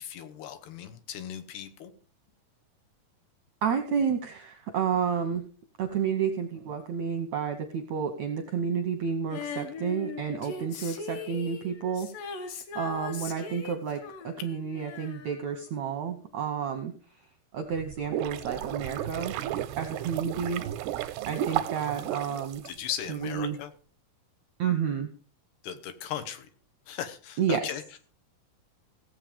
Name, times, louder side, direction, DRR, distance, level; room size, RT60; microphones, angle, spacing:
voice 1, 0.0-1.9 22.7-23.7 25.6-26.5 26.9-28.0, left 9 dB, 80° left, 9 dB, 3.2 m, -37 dB
voice 2, 3.6-5.4 5.8-12.4 12.7-16.9 17.5-19.3 19.8-20.6 21.3-22.6 23.1-23.6 24.6-25.1 27.4-27.6, right 7 dB, 75° right, 5 dB, 1.6 m, -30 dB
Female singing, 9.3-15.9 16.2-16.3, left 5 dB, 65° left, 2.8 m, -40 dB
sound 1, 17.7-23.2, right 12 dB, 90° right, 2.8 m, -33 dB
16.5 x 7.8 x 5.1 m, 0.41 s
omnidirectional pair, 4.6 m